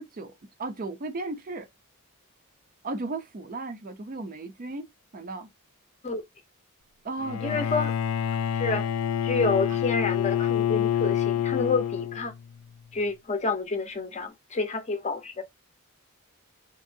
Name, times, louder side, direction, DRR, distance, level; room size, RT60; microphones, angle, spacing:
voice 1, 0.0-1.7 2.8-5.5 7.0-7.6, right 3 dB, 40° right, 0.5 m, -35 dB
Bowed string instrument, 7.2-12.5, left 9 dB, 75° left, 0.3 m, -27 dB
voice 2, 7.4-7.9 8.5-8.9 9.2-12.3 12.9-15.4, left 3 dB, 30° left, 0.6 m, -28 dB
2.9 x 2.7 x 2.6 m
head